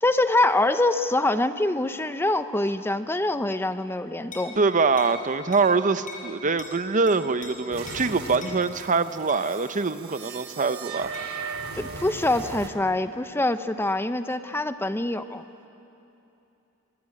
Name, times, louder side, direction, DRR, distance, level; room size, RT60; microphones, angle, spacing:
voice 1, 0.0-4.6 11.8-15.4, left 2 dB, 10° left, 10 dB, 0.7 m, -24 dB
sound 1, 4.3-4.5 5.0-5.2 5.5-5.7 6.1-6.3 6.6-6.7 7.1-7.5 7.9-8.0 8.4-8.6 9.3-9.5 11.1-11.3, left 4 dB, 40° left, 5.8 m, -41 dB
voice 2, 4.6-11.1, right 4 dB, 35° right, 11 dB, 0.8 m, -24 dB
sound 2, 7.7-12.7, right 4 dB, 90° right, 2.6 m, -37 dB
25.5 x 22.5 x 9.9 m, 2.9 s
head